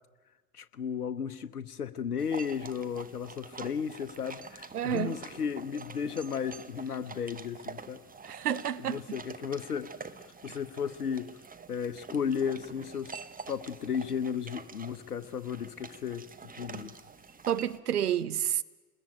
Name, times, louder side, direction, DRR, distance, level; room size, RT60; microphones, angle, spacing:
voice 1, 0.5-8.0 8.8-9.9 10.4-11.3 11.7-13.2 13.5-16.3 16.5-16.9, left 7 dB, 85° left, 1.0 m, -34 dB
sound 1, 2.2-17.8, right 5 dB, 20° right, 1.6 m, -46 dB
voice 2, 4.7-5.2 8.2-9.0 17.5-18.6, right 10 dB, 85° right, 1.0 m, -29 dB
28.5 x 21.0 x 9.0 m
figure-of-eight pair, 70°, 44 cm